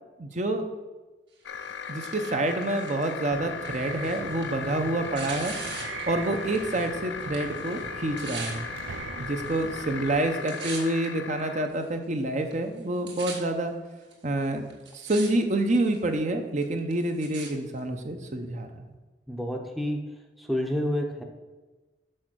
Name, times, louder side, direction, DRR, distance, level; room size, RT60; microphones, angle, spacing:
voice 1, 0.2-0.6 1.9-5.5 6.1-8.7 9.2-13.7 14.2-14.6 14.9-18.9, right 1 dB, 40° right, 5 dB, 0.7 m, -28 dB
sound 1, 1.4-11.7, left 6 dB, 70° left, 0.5 m, -38 dB
Tearing, 1.5-6.9 7.2-8.6 9.3-9.8 10.1-11.0 11.7-11.8 12.5-12.6 12.8-13.3 14.1-14.2 14.7-15.3 15.6-16.1 16.6-17.5 18.3-18.4, right 4 dB, 65° right, 2.1 m, -41 dB
sound 2, 3.3-10.2, right 6 dB, 90° right, 0.4 m, -41 dB
voice 2, 19.3-20.0 20.4-21.2, equal, ahead, 2 dB, 0.6 m, -29 dB
6.4 x 5.6 x 6.1 m, 1.2 s
head